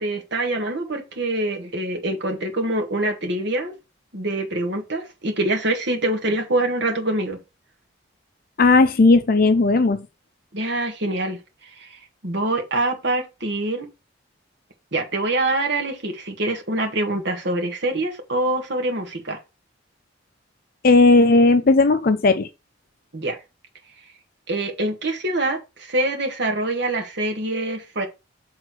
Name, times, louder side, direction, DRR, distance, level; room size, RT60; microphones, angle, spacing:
voice 1, 0.0-3.8 4.1-7.4 10.5-11.4 11.8-13.9 14.9-19.4 23.1-23.4 24.5-28.1, right 2 dB, 60° right, 1.8 m, -25 dB
voice 2, 8.6-10.1 20.8-22.5, left 3 dB, 45° left, 0.5 m, -15 dB
6.5 x 3.8 x 6.1 m
head